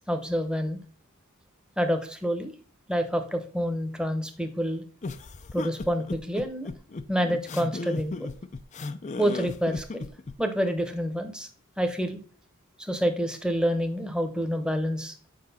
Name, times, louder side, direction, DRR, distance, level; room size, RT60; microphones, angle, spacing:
voice 1, 0.1-0.8 1.8-2.5 2.9-4.8 5.5-6.7 7.1-8.3 9.2-10.0 10.4-11.5 11.8-12.2 12.8-15.1, equal, 5° right, 6 dB, 0.9 m, -28 dB
sound 1, 5.0-10.4, left 3 dB, 35° left, 0.4 m, -35 dB
7.8 x 5.1 x 4.1 m, 0.42 s
head